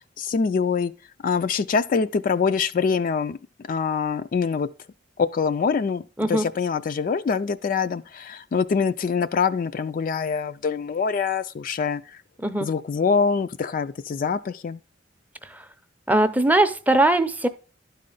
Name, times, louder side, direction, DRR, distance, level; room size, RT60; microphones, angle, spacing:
voice 1, 0.2-0.9 1.2-3.4 3.7-4.7 5.2-12.2 12.6-14.8, left 5 dB, 45° left, 0.3 m, -24 dB
voice 2, 16.1-17.5, right 2 dB, 10° right, 0.5 m, -20 dB
11.5 x 4.3 x 3.8 m
head